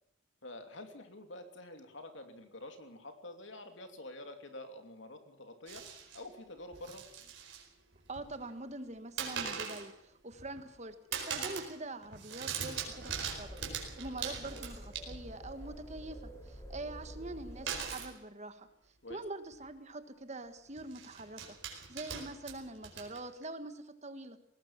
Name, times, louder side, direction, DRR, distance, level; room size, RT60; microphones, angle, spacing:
voice 1, 0.4-5.8 6.1-7.0 19.0-19.2, left 1 dB, 60° left, 6 dB, 2.9 m, -48 dB
sound 1, 5.7-6.2 6.7-7.7 7.9-8.5 9.2-9.9 10.3-10.8 11.1-11.8 12.0-15.4 17.7-18.1 19.1-19.2 19.5-19.7 20.8-23.4, right 7 dB, 60° right, 4.6 m, -41 dB
voice 2, 8.1-18.7 19.1-24.4, right 2 dB, 35° right, 10 dB, 1.4 m, -44 dB
sound 2, 12.9-18.0, equal, 15° left, 4.0 m, -48 dB
20.5 x 18.0 x 7.4 m, 0.74 s
head